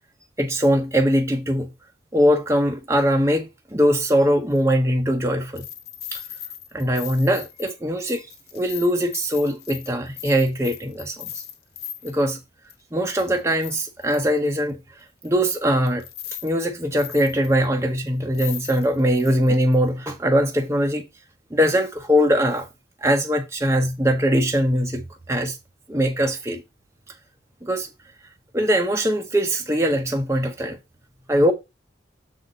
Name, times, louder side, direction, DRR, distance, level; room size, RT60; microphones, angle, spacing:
voice 1, 0.4-1.7 2.1-5.7 6.1-6.2 6.7-8.3 8.5-11.4 12.0-12.4 12.9-14.8 15.2-16.0 16.4-21.1 21.5-22.7 23.0-25.0 25.3-25.6 25.9-26.6 27.6-27.9 28.5-30.8 31.3-31.5, equal, 15° right, 0.8 m, -21 dB
sound 1, 4.5-4.6 5.5-12.2 12.7-12.8 13.2-14.5 15.2-15.3 15.9-16.5 16.8-17.6 18.1-18.2 18.3-19.8 20.1-20.2, left 10 dB, 55° left, 1.0 m, -38 dB
7.2 x 4.2 x 5.1 m
head